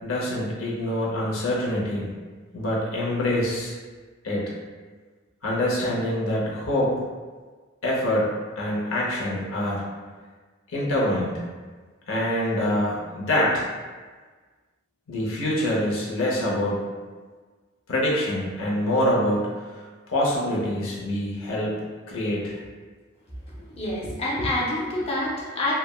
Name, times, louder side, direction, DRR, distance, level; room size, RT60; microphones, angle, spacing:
voice 1, 0.0-2.1 2.5-3.7 4.2-4.6 5.4-6.9 7.8-9.8 10.7-11.4 12.1-13.7 15.1-16.8 17.9-19.8 20.1-21.8 22.1-22.6, left 1 dB, 75° left, -5 dB, 0.7 m, -25 dB
voice 2, 23.7-25.7, left 1 dB, 30° left, -5 dB, 0.6 m, -27 dB
3.2 x 2.1 x 2.3 m, 1.4 s
head